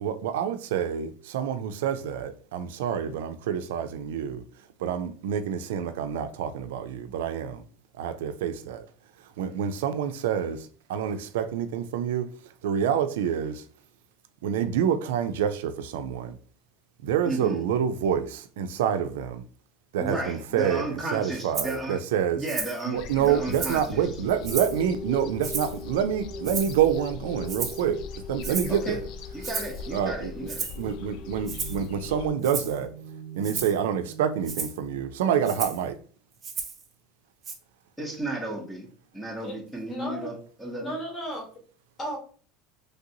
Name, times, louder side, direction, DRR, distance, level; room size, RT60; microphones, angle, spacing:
voice 1, 0.0-4.4 4.8-7.7 7.9-8.9 9.4-12.3 12.6-13.6 14.4-16.4 17.0-19.4 19.9-22.4 22.8-29.1 29.9-30.5 30.8-32.9 33.3-36.0, right 8 dB, 85° right, 0.3 m, -27 dB
voice 2, 17.3-17.6 20.0-22.0 22.3-24.1 28.7-29.0 29.3-30.7 38.0-38.9 39.1-40.9, right 1 dB, ahead, 0.8 m, -34 dB
Rattle (instrument), 21.5-21.8 22.5-22.8 23.2-23.9 24.4-24.8 25.4-25.8 26.4-26.9 27.5-27.8 28.4-28.8 29.4-29.8 30.5-30.8 31.5-31.9 32.4-32.8 33.4-33.8 34.4-34.8 35.4-35.8 36.4-36.8 37.4-37.5, right 5 dB, 30° right, 0.7 m, -34 dB
sound 1, 22.9-32.3, left 5 dB, 60° left, 0.3 m, -41 dB
sound 2, 24.1-34.5, left 1 dB, 80° left, 1.4 m, -41 dB
voice 3, 39.9-40.3 40.7-41.4 42.0-42.2, right 1 dB, 25° left, 1.3 m, -34 dB
3.2 x 2.5 x 2.7 m
supercardioid pair, 120°, 0 cm